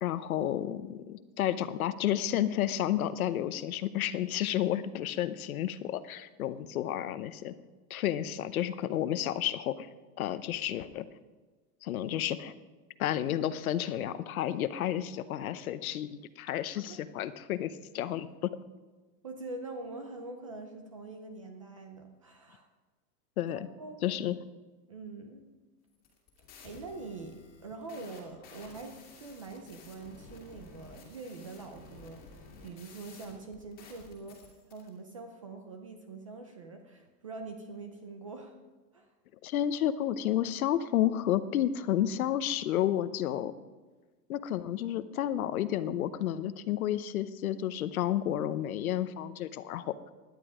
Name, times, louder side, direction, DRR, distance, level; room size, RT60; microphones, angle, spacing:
voice 1, 0.0-7.5 7.9-9.9 10.2-11.1 11.8-12.5 13.0-18.5 23.4-23.7 24.0-24.3 39.4-43.5 44.3-49.9, left 11 dB, 60° left, 14 dB, 0.9 m, -31 dB
voice 2, 19.2-22.7 23.5-24.0 24.9-25.4 26.6-38.5 38.9-39.1, right 3 dB, 20° right, 6 dB, 0.5 m, -44 dB
sound 1, 25.9-34.9, left 3 dB, 20° left, 2.2 m, -53 dB
17.0 x 11.0 x 4.9 m, 1.3 s
supercardioid pair, 175°, 48 cm